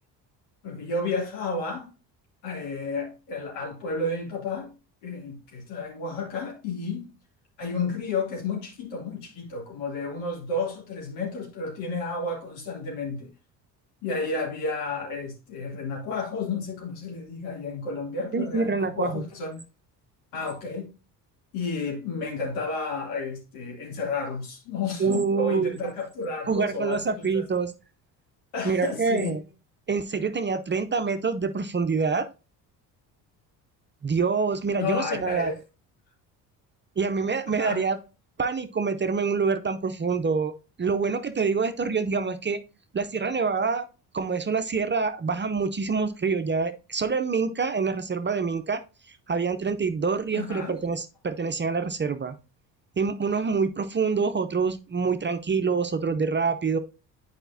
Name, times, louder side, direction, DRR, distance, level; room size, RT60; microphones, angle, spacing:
voice 1, 0.6-1.9 2.4-4.7 5.0-7.1 7.6-13.3 14.0-19.6 20.3-20.9 21.5-27.4 28.5-29.4 34.7-35.6 37.6-37.8 50.3-50.7, left 3 dB, 80° left, 2.7 m, -31 dB
voice 2, 18.3-19.2 25.0-25.8 26.5-27.7 28.6-29.4 29.9-32.3 34.0-35.5 37.0-38.0 38.4-40.5 40.8-42.6 42.9-43.8 44.1-48.8 49.3-52.4 53.0-56.8, right 5 dB, 25° right, 0.6 m, -26 dB
8.9 x 5.0 x 2.7 m
hypercardioid pair, 60°, 49 cm